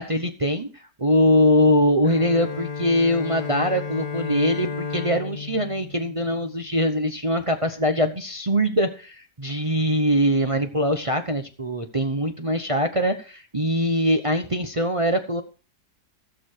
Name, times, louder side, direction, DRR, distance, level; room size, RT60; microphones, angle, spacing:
voice 1, 0.0-15.4, equal, 25° right, 7 dB, 0.7 m, -22 dB
Bowed string instrument, 2.0-6.9, left 5 dB, 60° left, 0.4 m, -33 dB
15.5 x 6.7 x 4.6 m, 0.35 s
omnidirectional pair, 1.8 m